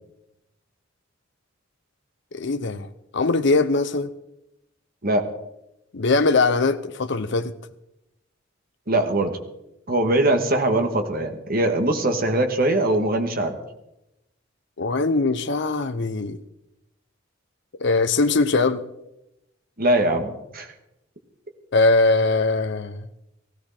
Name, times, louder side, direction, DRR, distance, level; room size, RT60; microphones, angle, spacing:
voice 1, 2.3-4.1 5.9-7.5 14.8-16.4 17.8-18.8 21.7-23.1, left 3 dB, 65° left, 0.8 m, -21 dB
voice 2, 8.9-9.3 9.9-13.6 19.8-20.7, right 1 dB, 50° right, 2.1 m, -21 dB
17.0 x 16.5 x 4.4 m
head